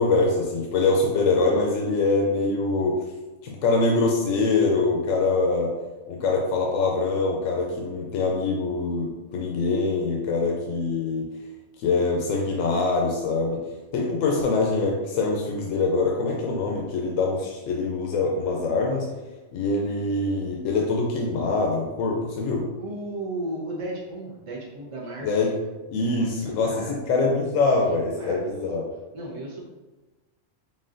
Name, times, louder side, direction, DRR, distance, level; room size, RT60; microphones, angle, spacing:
voice 1, 0.0-3.0 3.4-5.7 6.1-11.3 11.8-13.6 13.9-19.1 19.5-22.6 25.2-25.5 25.9-28.8, left 3 dB, 85° left, 0 dB, 1.0 m, -24 dB
voice 2, 22.8-25.4 26.0-28.7 29.1-29.6, right 1 dB, 35° right, -4 dB, 0.5 m, -36 dB
4.2 x 3.7 x 2.5 m, 1.1 s
omnidirectional pair, 1.3 m